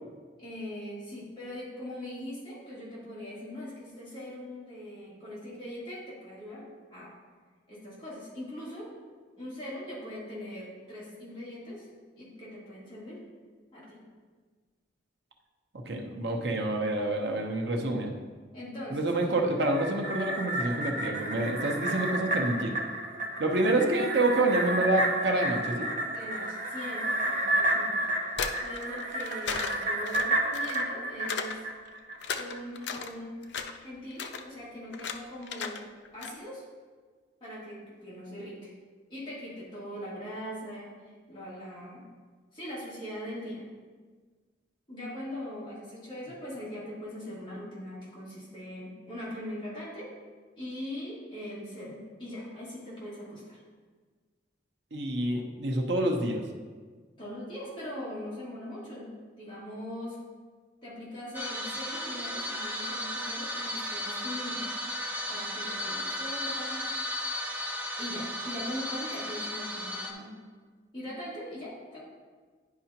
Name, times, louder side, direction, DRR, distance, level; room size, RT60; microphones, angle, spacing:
voice 1, 0.4-7.1 7.7-8.9 9.3-11.9 12.2-13.2 13.7-14.0 18.5-19.3 23.7-24.0 26.1-28.1 28.6-31.6 32.3-33.4 33.8-35.8 36.1-36.6 37.4-38.7 39.1-42.0 42.5-43.6 44.9-50.1 50.6-53.6 57.2-59.1 59.4-60.2 60.8-64.8 65.3-66.8 68.0-70.3 70.9-72.0, left 1 dB, 25° left, -9 dB, 2.2 m, -41 dB
voice 2, 15.9-18.1 18.9-22.8 23.4-25.9 54.9-56.4, right 2 dB, 70° right, 1 dB, 0.9 m, -27 dB
sound 1, 19.6-32.2 32.5-32.6, right 1 dB, 45° right, 0.8 m, -31 dB
sound 2, 28.3-30.9 31.3-31.6 31.9-33.1 33.4-33.8 34.1-34.4 34.9-35.2 35.4-35.8 36.1-36.3, left 6 dB, 75° left, 0.5 m, -35 dB
sound 3, 61.3-70.1, left 1 dB, 10° right, 0.6 m, -35 dB
10.5 x 4.9 x 2.9 m, 1.5 s
head